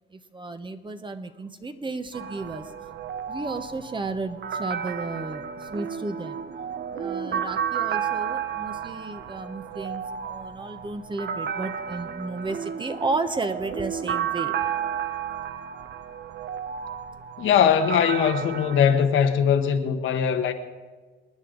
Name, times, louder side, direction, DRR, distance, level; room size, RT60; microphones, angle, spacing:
voice 1, 0.1-2.7 3.3-6.4 7.0-14.5, right 3 dB, 25° right, 1.0 m, -33 dB
sound 1, 2.1-19.0, right 8 dB, 60° right, 0.8 m, -32 dB
voice 2, 17.4-20.5, left 8 dB, 80° left, 1.2 m, -21 dB
27.0 x 9.6 x 3.9 m
cardioid pair, 90°, 20 cm